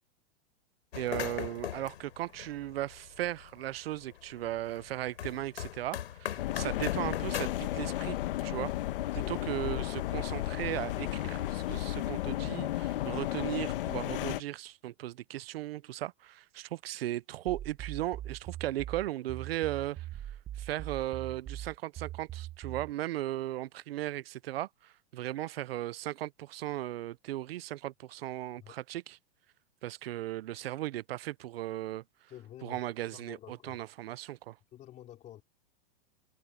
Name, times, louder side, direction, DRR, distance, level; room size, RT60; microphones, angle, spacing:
sound 1, 0.9-3.6 3.9-7.6, left 11 dB, 85° left, 4.4 m, -39 dB
voice 1, 0.9-8.2 8.4-8.7 9.1-29.2 29.8-32.0 32.6-34.6, right 14 dB, 75° right, 0.6 m, -37 dB
sound 2, 6.4-14.4, left 14 dB, 65° left, 1.2 m, -33 dB
voice 2, 9.1-9.7 28.6-28.8 32.3-33.8 34.7-35.4, left 12 dB, 25° left, 3.9 m, -50 dB
sound 3, 17.5-22.9, right 12 dB, 15° right, 0.8 m, -41 dB
supercardioid pair, 160°, 30 cm